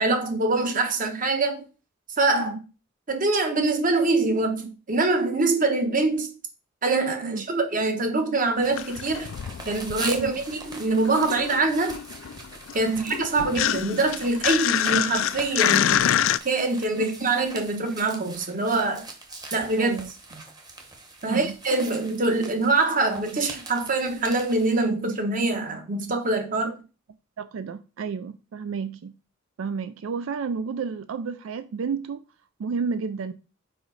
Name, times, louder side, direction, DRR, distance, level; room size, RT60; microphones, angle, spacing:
voice 1, 0.0-1.6 2.2-2.5 3.1-6.3 6.8-9.3 9.6-11.9 12.7-16.0 16.4-19.0 19.5-19.9 21.2-26.7, right 3 dB, 45° right, 1.2 m, -24 dB
sound 1, 8.6-10.5 10.8-16.4, left 10 dB, 75° left, 0.3 m, -26 dB
sound 2, 8.6-24.8, right 3 dB, 20° right, 1.1 m, -42 dB
voice 2, 19.8-20.1 21.2-21.5 27.4-29.1 29.6-32.2 32.6-33.3, right 5 dB, 90° right, 0.4 m, -31 dB
4.9 x 4.8 x 4.0 m
head